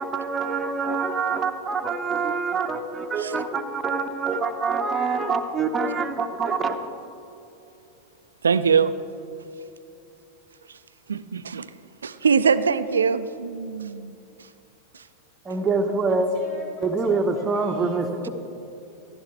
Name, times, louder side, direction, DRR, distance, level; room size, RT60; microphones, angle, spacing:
voice 1, 0.0-6.8 15.4-16.3 16.8-18.3, right 4 dB, 20° right, 5 dB, 0.8 m, -25 dB
voice 2, 8.4-8.9 11.1-11.7 12.0-14.1, right 6 dB, 70° right, 13 dB, 0.3 m, -22 dB
voice 3, 16.1-18.3, left 2 dB, 50° left, -2 dB, 1.9 m, -40 dB
14.0 x 11.5 x 3.5 m, 2.8 s
figure-of-eight pair, 90°, 0 cm